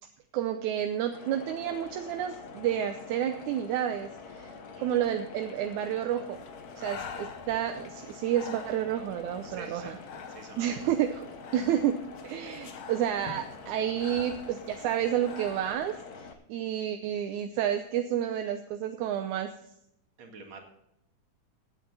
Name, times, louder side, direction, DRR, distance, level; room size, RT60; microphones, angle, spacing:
voice 1, 0.3-4.5 4.8-6.4 6.8-10.0 10.6-12.0 12.2-16.0 16.5-19.5, right 10 dB, 80° right, 6 dB, 2.2 m, -30 dB
sound 1, 1.1-16.3, left 4 dB, 60° left, 1.0 m, -46 dB
Breathing, 6.3-15.7, left 6 dB, 85° left, 2.9 m, -47 dB
voice 2, 9.5-9.9 10.3-10.8 20.2-20.6, right 4 dB, 60° right, 2 dB, 3.3 m, -47 dB
17.0 x 8.8 x 4.0 m, 0.78 s
omnidirectional pair, 3.5 m